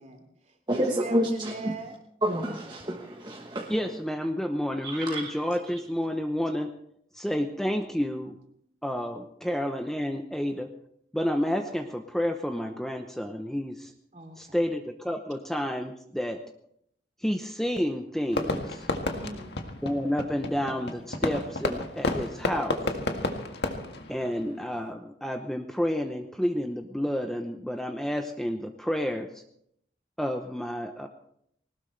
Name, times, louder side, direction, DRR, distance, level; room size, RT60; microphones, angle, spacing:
voice 1, 0.0-2.0 14.1-14.7 19.1-19.5, right 2 dB, 40° right, 4 dB, 2.9 m, -41 dB
voice 2, 0.7-1.8 2.2-3.7 4.8-5.3, equal, 25° right, -1 dB, 1.3 m, -29 dB
voice 3, 3.7-6.7 7.1-8.4 8.8-10.7 11.1-13.9 14.4-16.4 17.2-18.9 19.8-22.8 24.1-29.4 30.2-31.1, equal, ahead, 5 dB, 0.8 m, -30 dB
Fireworks, 18.3-24.9, left 2 dB, 75° left, 1.8 m, -32 dB
20.5 x 19.0 x 3.3 m, 0.72 s
head